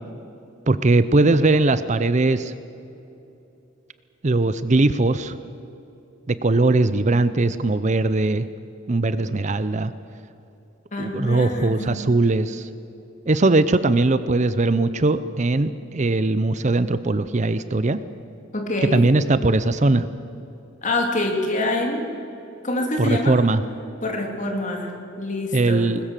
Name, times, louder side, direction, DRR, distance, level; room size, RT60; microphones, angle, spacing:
voice 1, 0.7-2.5 4.2-5.4 6.3-8.5 8.9-9.9 11.0-12.7 13.3-18.0 18.8-20.1 23.0-23.6 25.5-26.0, right 2 dB, 35° right, 13 dB, 0.6 m, -20 dB
voice 2, 10.9-11.9 18.5-19.0 20.8-22.1 22.6-23.4 24.0-25.9, left 2 dB, 35° left, 2 dB, 3.0 m, -26 dB
21.0 x 20.5 x 7.5 m, 2.8 s
head